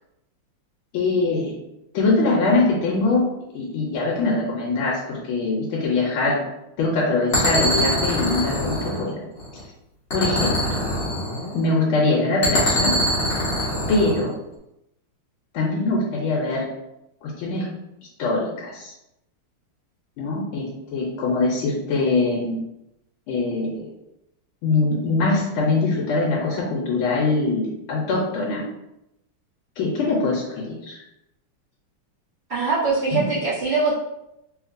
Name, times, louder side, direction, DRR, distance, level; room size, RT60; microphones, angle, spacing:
voice 1, 0.9-1.5 1.9-3.2 3.5-6.4 6.8-9.2 10.1-10.6 11.5-12.9 13.9-14.3 15.5-16.7 17.2-17.7 18.2-18.9 20.2-22.6 23.3-23.8 24.6-28.6 29.8-31.0 33.1-33.2, left 3 dB, 75° left, -3 dB, 1.4 m, -22 dB
sound 1, 7.3-9.6 10.1-11.7 12.4-14.3, equal, 50° left, 0.8 m, -23 dB
voice 2, 32.5-33.9, right 4 dB, 75° right, -11 dB, 0.5 m, -22 dB
3.4 x 2.8 x 2.5 m, 0.85 s
omnidirectional pair, 2.4 m